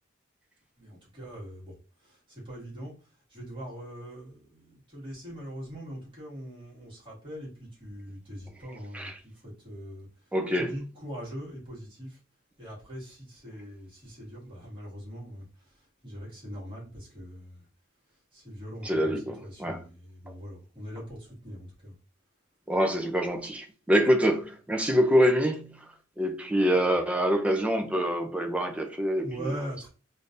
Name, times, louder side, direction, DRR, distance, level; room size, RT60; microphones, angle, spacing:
voice 1, 0.8-12.2 12.6-17.7 18.3-21.9 29.2-29.9, equal, 25° right, 1.8 m, -42 dB
voice 2, 10.3-10.7 18.8-19.8 22.7-25.8 26.2-29.6, equal, 5° right, 0.5 m, -25 dB
3.7 x 2.6 x 2.5 m
head